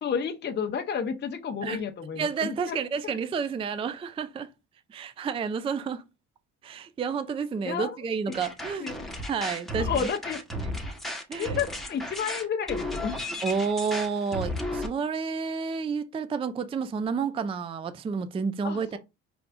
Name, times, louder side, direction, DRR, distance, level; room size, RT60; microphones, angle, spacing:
voice 1, 0.0-2.8 3.0-3.2 7.6-8.0 8.8-9.1 9.8-10.4 11.4-13.2 18.6-19.0, left 7 dB, 30° left, 0.7 m, -31 dB
voice 2, 2.2-4.5 4.9-6.0 6.6-8.9 9.3-10.1 10.6-10.8 11.3-11.6 13.4-19.0, right 5 dB, 15° right, 0.4 m, -30 dB
sound 1, 8.3-14.9, left 1 dB, ahead, 1.1 m, -34 dB
4.7 x 3.4 x 2.5 m
supercardioid pair, 70°, 35 cm